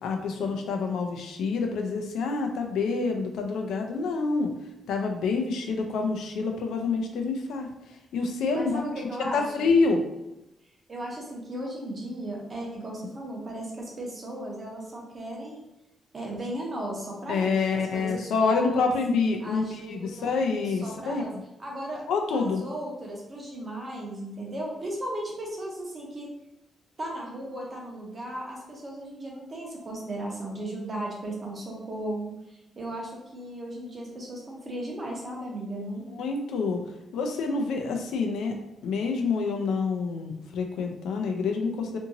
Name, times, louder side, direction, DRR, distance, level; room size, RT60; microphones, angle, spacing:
voice 1, 0.0-4.5 4.9-7.7 8.1-8.8 9.3-10.0 17.3-21.4 22.1-22.6 36.1-36.8 37.1-38.5 38.8-42.0, left 4 dB, 80° left, 3 dB, 0.4 m, -27 dB
voice 2, 8.5-9.7 10.9-15.6 16.1-18.9 19.4-20.4 20.6-21.3 21.6-22.0 22.3-26.3 27.0-36.3, right 1 dB, 25° right, -2 dB, 0.7 m, -36 dB
2.8 x 2.6 x 2.6 m, 0.93 s
cardioid pair, 175°, 0 cm